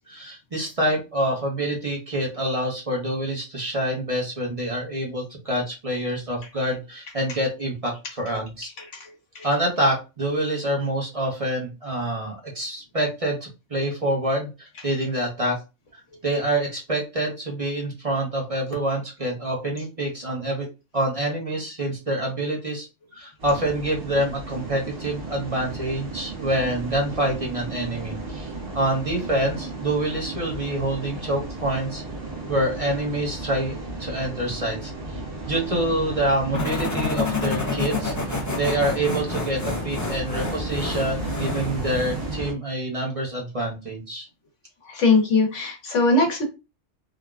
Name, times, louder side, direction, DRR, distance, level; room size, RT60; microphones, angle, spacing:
voice 1, 0.1-8.7 9.4-15.6 16.2-20.7 20.9-22.9 23.1-32.0 32.5-35.2 35.5-44.3, right 1 dB, 30° right, -2 dB, 0.9 m, -26 dB
sound 1, 23.4-42.5, right 2 dB, 55° right, 1.4 m, -34 dB
sound 2, 36.5-42.3, left 4 dB, 25° left, 0.4 m, -29 dB
voice 2, 44.9-46.4, left 3 dB, 80° left, 2 dB, 1.3 m, -20 dB
3.7 x 2.2 x 2.4 m, 0.27 s
omnidirectional pair, 1.2 m